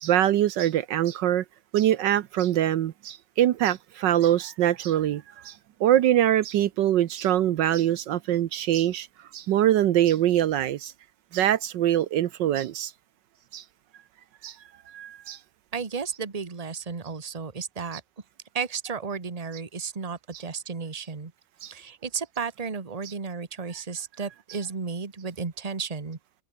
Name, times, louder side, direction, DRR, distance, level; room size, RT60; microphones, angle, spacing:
voice 1, 0.0-1.4 1.7-5.5 5.8-9.1 9.3-10.9 11.3-12.9 13.5-13.6 14.4-14.5 14.9-15.4 21.6-21.7, right 12 dB, 75° right, 1.4 m, -23 dB
voice 2, 15.7-18.0 18.5-21.3 21.7-26.2, right 5 dB, 20° right, 1.4 m, -33 dB
omnidirectional pair, 2.0 m